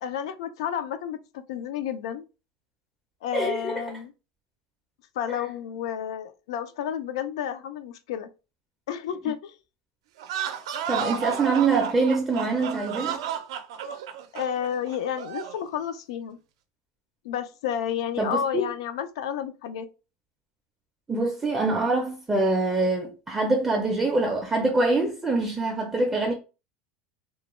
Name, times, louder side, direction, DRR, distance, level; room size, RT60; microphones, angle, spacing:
voice 1, 0.0-2.2 3.2-4.1 5.2-8.3 8.9-9.6 14.3-16.4 17.2-19.9, left 9 dB, 80° left, 0.3 m, -31 dB
voice 2, 3.3-3.8 5.3-5.4 10.9-13.2 18.2-18.6 21.1-26.3, right 3 dB, 10° right, 0.4 m, -24 dB
sound 1, 10.2-15.6, right 8 dB, 85° right, 0.4 m, -32 dB
2.2 x 2.1 x 2.9 m
supercardioid pair, 155°, 3 cm